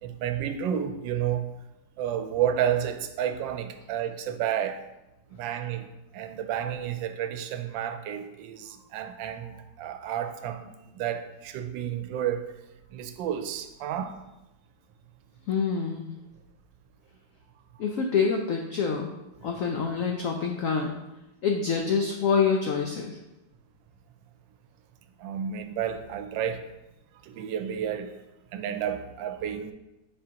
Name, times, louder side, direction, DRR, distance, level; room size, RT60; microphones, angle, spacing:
voice 1, 0.0-1.5 2.0-4.9 5.3-12.5 12.9-14.2 25.2-26.7 27.2-28.1 28.5-29.7, right 9 dB, 85° right, 8 dB, 1.3 m, -31 dB
voice 2, 15.5-16.1 17.8-19.1 19.4-20.9 21.4-23.2, left 5 dB, 85° left, 3 dB, 0.7 m, -26 dB
7.3 x 4.6 x 2.8 m, 0.95 s
omnidirectional pair, 2.0 m